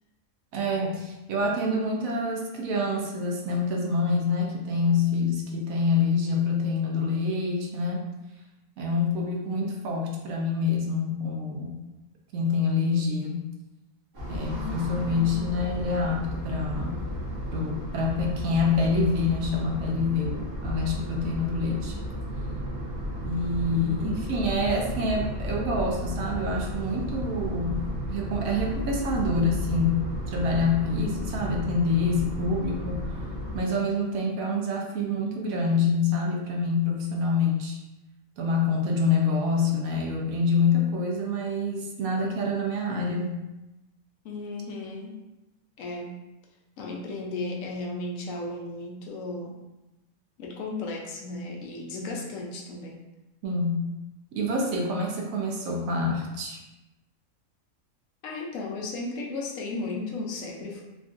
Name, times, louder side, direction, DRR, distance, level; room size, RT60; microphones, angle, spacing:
voice 1, 0.5-8.0 8.8-11.7 12.3-13.4 14.3-17.0 17.5-21.9 23.2-27.8 28.1-30.0 30.3-33.3 33.5-37.8 38.4-43.4 53.4-53.9 54.3-56.6, left 3 dB, 80° right, -1 dB, 1.1 m, -26 dB
sound 1, 14.1-33.6, equal, 45° right, 1.2 m, -33 dB
voice 2, 14.4-15.5 23.7-24.6 44.2-45.2 45.8-46.2 46.8-49.6 50.4-53.0 58.2-60.8, left 3 dB, 75° left, -1 dB, 1.0 m, -35 dB
3.6 x 2.5 x 2.4 m, 0.99 s
omnidirectional pair, 1.4 m